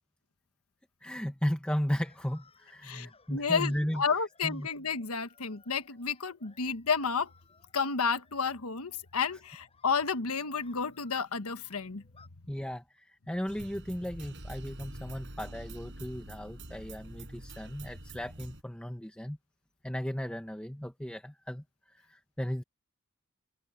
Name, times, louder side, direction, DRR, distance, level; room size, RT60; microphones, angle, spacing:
voice 1, 1.0-4.0 4.4-4.7 12.5-19.4 19.8-22.6, equal, 5° left, 1.0 m, -35 dB
sound 1, 1.9-12.3, left 4 dB, 25° left, 6.5 m, -64 dB
voice 2, 2.8-7.3 7.7-12.0, left 5 dB, 85° left, 1.3 m, -31 dB
sound 2, 13.5-18.6, right 1 dB, 55° right, 7.6 m, -45 dB
open air
head